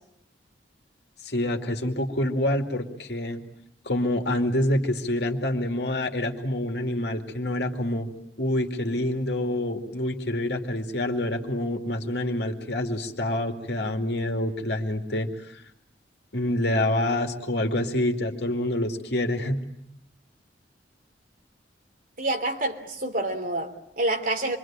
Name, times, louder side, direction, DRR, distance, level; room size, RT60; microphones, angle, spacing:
voice 1, 1.2-3.4 3.8-8.1 8.4-15.6 16.3-19.6, left 1 dB, 65° left, 5 dB, 2.5 m, -27 dB
voice 2, 22.2-24.6, right 2 dB, 50° right, 4 dB, 3.2 m, -28 dB
27.5 x 24.0 x 8.9 m, 0.77 s
head